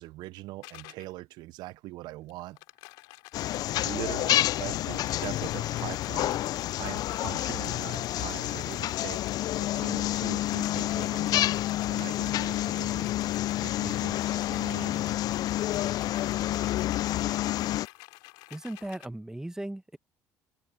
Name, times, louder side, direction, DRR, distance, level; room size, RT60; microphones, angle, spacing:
voice 1, 0.0-2.6 3.8-6.4 6.8-9.3 9.6-13.1 13.6-15.2, right 18 dB, 75° right, 0.5 m, -41 dB
sound 1, 0.6-1.1 2.3-4.5 4.9-9.5 10.3-19.1, left 25 dB, 90° left, 4.3 m, -50 dB
sound 2, 3.3-17.9, left 14 dB, 60° left, 0.3 m, -29 dB
voice 2, 18.5-20.0, right 1 dB, 10° right, 1.3 m, -37 dB
supercardioid pair, 80°, 7 cm